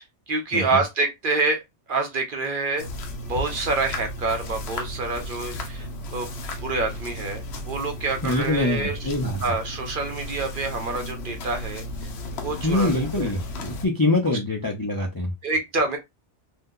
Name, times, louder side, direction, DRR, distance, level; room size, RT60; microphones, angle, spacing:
voice 1, 0.0-1.6 1.9-2.8 3.3-6.3 6.6-9.0 9.4-11.8 12.4-13.4 14.3-14.4 15.4-16.0, right 3 dB, 55° right, 0.7 m, -27 dB
sound 1, 2.8-13.9, left 1 dB, 70° left, 0.9 m, -34 dB
voice 2, 8.2-9.4 12.6-15.3, left 2 dB, 30° left, 0.4 m, -24 dB
2.7 x 2.2 x 3.7 m
omnidirectional pair, 1.2 m